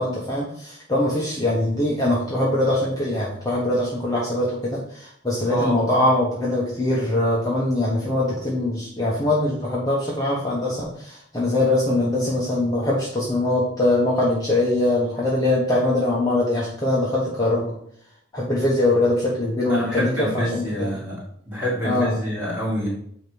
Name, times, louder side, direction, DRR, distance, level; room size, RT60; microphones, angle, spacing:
voice 1, 0.0-17.7 18.3-21.0 21.8-22.2, left 1 dB, 20° left, -6 dB, 1.3 m, -22 dB
voice 2, 19.7-21.2 21.5-22.9, equal, 10° right, -5 dB, 3.4 m, -27 dB
9.0 x 3.1 x 5.4 m, 0.65 s
head